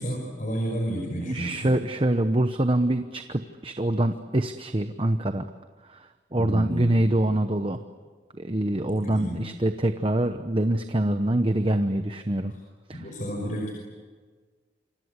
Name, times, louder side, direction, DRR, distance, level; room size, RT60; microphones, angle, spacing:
voice 1, 0.0-1.6 6.3-6.9 8.9-9.5 12.9-13.7, equal, 45° left, 0 dB, 5.5 m, -31 dB
voice 2, 1.3-5.5 5.9-7.8 8.4-12.5 12.9-13.0, right 1 dB, 30° right, 8 dB, 0.9 m, -25 dB
28.0 x 25.5 x 8.2 m, 1.5 s
head